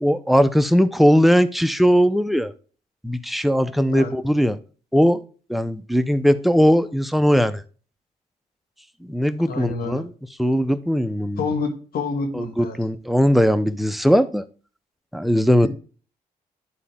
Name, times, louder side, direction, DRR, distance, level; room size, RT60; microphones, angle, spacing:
voice 1, 0.0-2.5 3.0-4.6 4.9-5.2 5.5-7.6 9.0-10.1 10.4-11.5 12.3-14.4 15.1-15.7, equal, ahead, 0.8 m, -19 dB
voice 2, 9.5-10.0 11.4-12.8, left 4 dB, 70° left, 1.8 m, -28 dB
11.5 x 4.1 x 3.5 m
cardioid pair, 75°, 16 cm